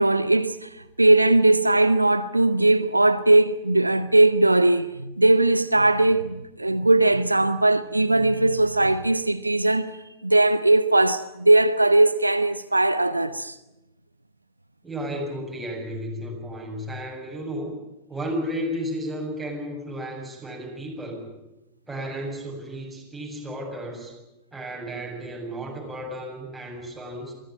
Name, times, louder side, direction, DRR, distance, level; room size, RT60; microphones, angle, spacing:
voice 1, 0.0-13.6, right 2 dB, 85° right, 0.7 m, -19 dB
voice 2, 14.8-17.8 18.1-21.3 21.9-24.2 24.5-27.3, equal, 10° right, 7.5 m, -33 dB
23.0 x 16.0 x 10.0 m
figure-of-eight pair, 90°, 0 cm